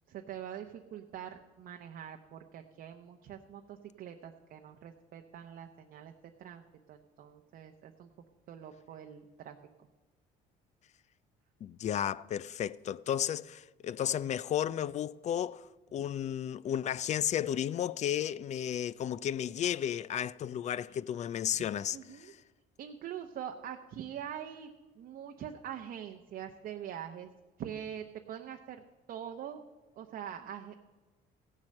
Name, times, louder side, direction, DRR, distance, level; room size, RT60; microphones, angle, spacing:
voice 1, 0.1-6.1 6.4-6.6 6.9-8.1 8.5-9.6 21.9-22.3 22.8-24.7 25.0-27.3 27.6-28.8 29.1-29.6 30.0-30.8, right 9 dB, 60° right, 0.7 m, -44 dB
voice 2, 11.6-15.7 15.9-22.3, left 10 dB, 45° left, 0.4 m, -33 dB
15.5 x 7.5 x 6.4 m
cardioid pair, 110°, 17 cm